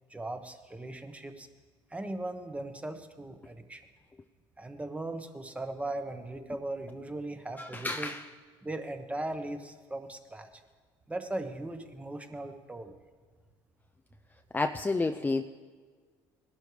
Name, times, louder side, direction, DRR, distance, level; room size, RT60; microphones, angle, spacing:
voice 1, 0.1-1.5 1.9-3.8 4.6-8.1 8.6-10.5 11.1-13.0, right 2 dB, 10° right, 7 dB, 1.1 m, -38 dB
voice 2, 7.6-8.2 14.5-15.4, left 3 dB, 15° left, 5 dB, 0.5 m, -30 dB
18.5 x 11.5 x 3.3 m, 1.5 s
supercardioid pair, 80°, 10 cm